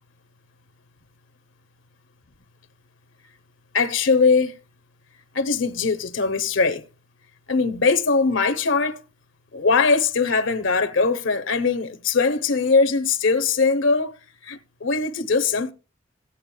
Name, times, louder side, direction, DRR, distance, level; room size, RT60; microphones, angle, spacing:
voice 1, 3.7-4.6 5.3-6.8 7.5-9.0 9.5-14.2 14.4-15.7, left 4 dB, 70° left, 0.7 m, -21 dB
15.5 x 9.8 x 2.2 m
head